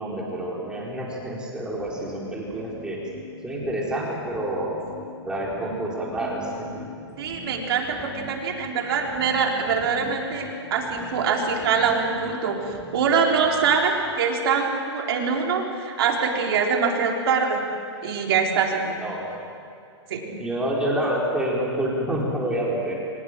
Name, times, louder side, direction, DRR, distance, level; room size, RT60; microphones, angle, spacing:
voice 1, 0.0-3.0 3.4-4.7 5.2-6.8 7.1-7.3 19.0-19.4 20.2-22.9, right 1 dB, 5° right, -4 dB, 4.4 m, -28 dB
sound 1, 1.6-14.1, equal, 15° left, 7.1 m, -41 dB
voice 2, 7.2-17.6 18.0-19.0 20.1-20.2, right 5 dB, 60° right, 1 dB, 3.9 m, -24 dB
23.5 x 20.0 x 7.6 m, 2.4 s
hypercardioid pair, 155°, 15 cm